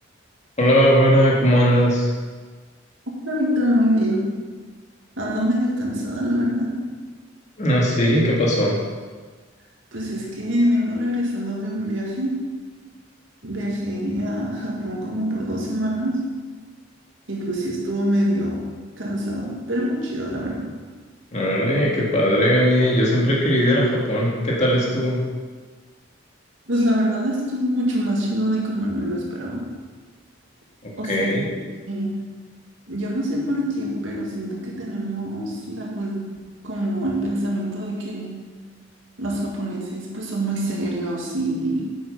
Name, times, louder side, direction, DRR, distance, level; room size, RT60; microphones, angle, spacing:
voice 1, 0.6-2.1 7.6-8.8 21.3-25.2 30.8-31.5, equal, 35° left, -4 dB, 2.1 m, -19 dB
voice 2, 3.3-4.4 5.2-6.9 9.9-12.4 13.4-16.4 17.3-20.8 26.7-29.8 31.0-31.4 31.9-32.5 32.9-38.5 39.2-42.0, equal, 70° right, -2 dB, 2.2 m, -25 dB
8.9 x 7.8 x 5.4 m, 1.4 s
head